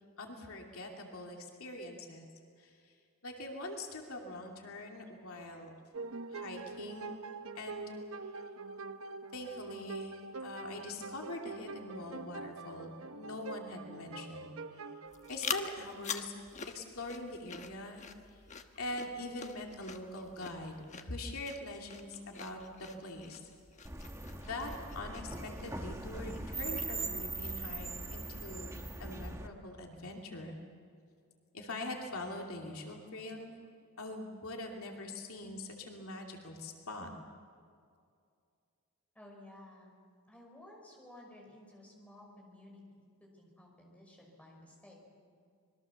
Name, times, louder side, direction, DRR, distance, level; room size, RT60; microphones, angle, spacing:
voice 1, 0.2-2.3 2.6-2.8 3.2-5.7 6.3-7.1 7.5-7.9 9.3-10.2 10.4-14.8 15.3-16.3 16.6-18.0 18.8-23.4 24.5-28.7 29.0-30.6 31.5-33.6 34.0-37.1, left 2 dB, 70° left, 1 dB, 2.7 m, -43 dB
sound 1, 5.9-16.4, right 4 dB, 65° right, 0.9 m, -45 dB
sound 2, 15.1-27.8, left 6 dB, 30° left, 1.2 m, -46 dB
sound 3, 23.8-29.5, right 2 dB, 15° right, 1.3 m, -40 dB
voice 2, 39.1-40.0 40.3-45.2, left 1 dB, 5° left, -1 dB, 5.1 m, -55 dB
26.0 x 22.0 x 7.1 m, 2.3 s
head